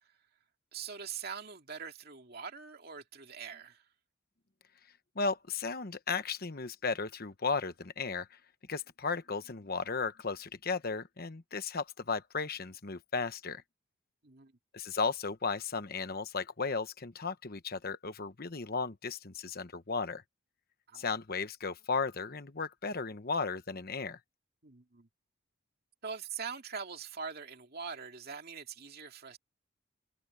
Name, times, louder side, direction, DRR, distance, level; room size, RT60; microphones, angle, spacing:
voice 1, 0.7-3.9 14.2-14.5 20.9-21.1 24.6-25.1 26.0-29.4, right 6 dB, 50° right, 2.4 m, -43 dB
voice 2, 5.1-8.4 8.7-13.6 14.7-20.2 20.9-24.2, left 4 dB, 45° left, 1.1 m, -35 dB
head